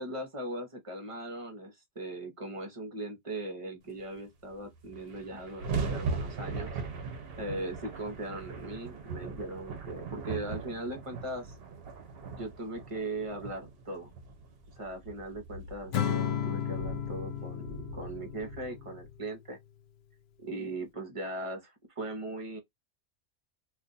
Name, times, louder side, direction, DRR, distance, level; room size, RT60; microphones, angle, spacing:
voice 1, 0.0-6.7 7.0-7.1 7.4-11.6 12.3-14.1 14.8-19.6 20.4-22.6, right 2 dB, 30° right, 0.9 m, -39 dB
sound 1, 4.5-4.6 4.7-19.1, right 4 dB, 60° right, 0.9 m, -40 dB
Acoustic guitar / Strum, 15.9-19.3, left 9 dB, 65° left, 0.8 m, -34 dB
2.5 x 2.4 x 3.9 m
omnidirectional pair, 1.2 m